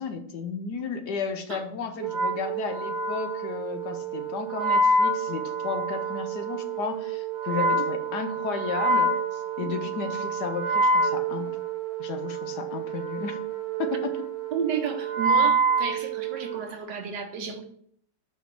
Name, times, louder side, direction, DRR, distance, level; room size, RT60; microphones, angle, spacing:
voice 1, 0.0-11.5 12.0-13.4 13.8-14.2, left 5 dB, 70° left, 7 dB, 1.3 m, -33 dB
Wind instrument woodwind instrument, 2.0-16.7, right 3 dB, 45° right, 0.8 m, -27 dB
voice 2, 14.5-17.6, right 6 dB, 70° right, 6 dB, 1.5 m, -32 dB
5.1 x 5.0 x 5.9 m, 0.63 s
omnidirectional pair, 2.0 m